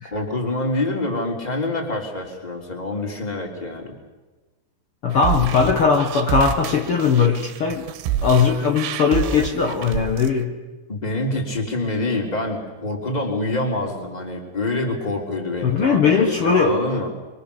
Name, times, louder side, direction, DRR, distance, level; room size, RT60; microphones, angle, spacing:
voice 1, 0.1-3.9 10.9-17.1, left 2 dB, 10° left, 1 dB, 2.8 m, -26 dB
voice 2, 5.0-7.8 8.2-10.5 15.6-17.0, left 5 dB, 80° left, 2 dB, 1.2 m, -19 dB
sound 1, 5.1-10.3, right 9 dB, 80° right, 3.2 m, -28 dB
26.0 x 23.5 x 6.7 m, 1.2 s
omnidirectional pair, 5.0 m